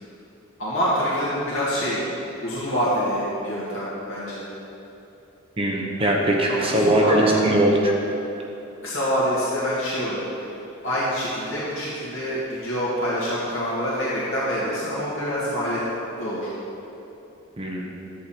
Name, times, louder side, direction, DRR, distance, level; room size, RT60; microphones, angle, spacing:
voice 1, 0.6-2.0 2.4-4.4 6.5-7.7 8.8-10.2 10.8-15.8 16.2-16.5, equal, 65° left, -8 dB, 2.1 m, -26 dB
voice 2, 5.6-7.9 17.6-18.0, right 1 dB, 25° right, -1 dB, 1.0 m, -20 dB
11.0 x 8.4 x 4.3 m, 3.0 s
head